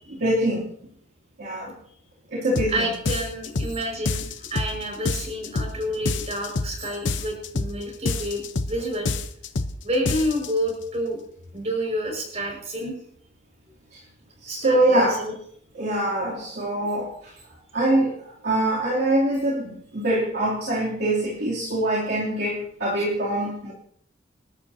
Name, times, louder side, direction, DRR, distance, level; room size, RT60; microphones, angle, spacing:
voice 1, 0.1-0.7 1.4-1.7 2.3-2.9 13.9-14.0 14.4-15.2 15.7-17.3 17.7-23.7, right 1 dB, 60° right, -6 dB, 2.9 m, -24 dB
sound 1, 2.5-2.7 3.0-3.7 4.0-4.7 5.0-5.7 6.0-6.7 7.0-7.7 8.0-8.7 9.0-9.7 10.0-10.5, left 3 dB, 70° left, 0.9 m, -27 dB
voice 2, 2.7-9.1 9.8-11.2 11.5-12.9 14.5-15.3 23.0-23.1, equal, 35° right, 1 dB, 5.5 m, -29 dB
27.0 x 12.0 x 2.8 m, 0.66 s
head